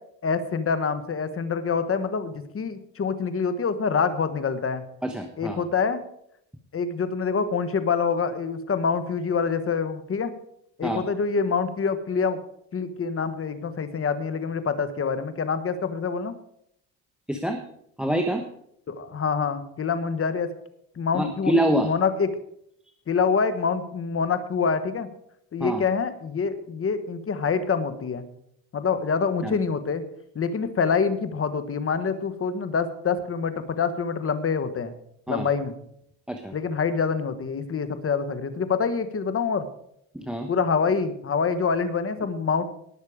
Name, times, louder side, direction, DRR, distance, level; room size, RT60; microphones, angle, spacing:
voice 1, 0.2-4.8 5.4-6.0 6.7-10.3 10.8-12.4 12.7-16.3 18.9-20.5 20.9-21.5 21.8-22.3 23.1-25.1 25.5-28.2 28.7-30.0 30.3-34.9 35.3-35.7 36.5-39.7 40.5-42.6, left 5 dB, 35° left, 11 dB, 1.3 m, -26 dB
voice 2, 5.0-5.6 10.8-11.1 17.3-17.6 18.0-18.4 21.1-21.9 25.6-25.8 29.4-29.5 35.3-35.5 36.3-36.5 40.1-40.5, right 1 dB, ahead, 5 dB, 1.0 m, -26 dB
18.5 x 6.5 x 5.0 m, 0.74 s
cardioid pair, 105°, 41 cm